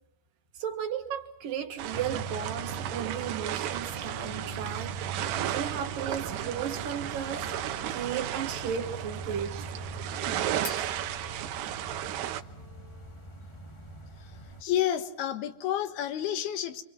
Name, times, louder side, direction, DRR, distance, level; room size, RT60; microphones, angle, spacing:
voice 1, 0.5-5.0 5.5-7.5 7.9-9.7, right 8 dB, 60° right, 3.0 m, -34 dB
sound 1, 1.8-12.4, right 12 dB, 75° right, 3.1 m, -34 dB
sound 2, 1.9-14.6, right 2 dB, 25° left, 0.5 m, -42 dB
sound 3, 8.4-13.3, left 3 dB, 45° left, 5.9 m, -49 dB
voice 2, 14.6-16.8, left 11 dB, 65° left, 3.3 m, -30 dB
29.0 x 26.0 x 6.1 m
omnidirectional pair, 5.0 m